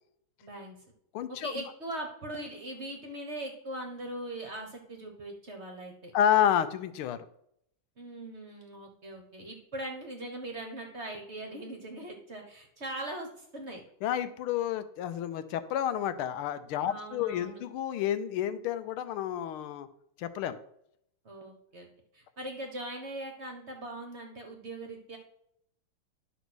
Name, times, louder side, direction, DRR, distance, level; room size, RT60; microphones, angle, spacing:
voice 1, 0.4-0.8 1.3-6.1 8.0-13.8 16.9-17.6 21.2-21.9 22.1-25.2, right 1 dB, 40° right, 3 dB, 1.2 m, -40 dB
voice 2, 1.1-1.6 6.1-7.3 14.0-19.9 20.2-20.6, left 10 dB, 80° left, 12 dB, 1.5 m, -30 dB
11.0 x 4.1 x 6.2 m, 0.73 s
omnidirectional pair, 2.4 m